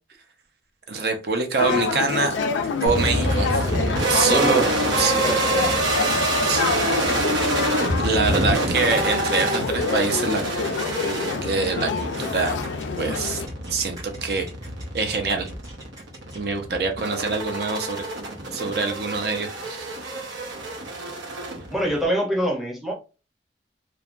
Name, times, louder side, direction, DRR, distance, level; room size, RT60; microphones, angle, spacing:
voice 1, 0.9-2.3 2.8-3.7 4.1-4.7 5.0-5.2 6.5-6.7 7.1-7.4 8.0-10.7 11.0-12.6 13.0-13.4 13.7-14.5 14.9-15.5 16.3-18.0 18.5-19.9, right 4 dB, 55° right, 5 dB, 0.5 m, -25 dB
sound 1, 1.6-13.5, left 5 dB, 90° left, 0.4 m, -28 dB
sound 2, 2.1-16.4, right 2 dB, 20° right, 1.2 m, -45 dB
sound 3, 2.9-22.1, right 1 dB, 90° right, 0.8 m, -26 dB
voice 2, 4.3-5.7 21.7-22.9, equal, ahead, 0 dB, 0.6 m, -25 dB
3.2 x 2.1 x 2.4 m, 0.32 s
head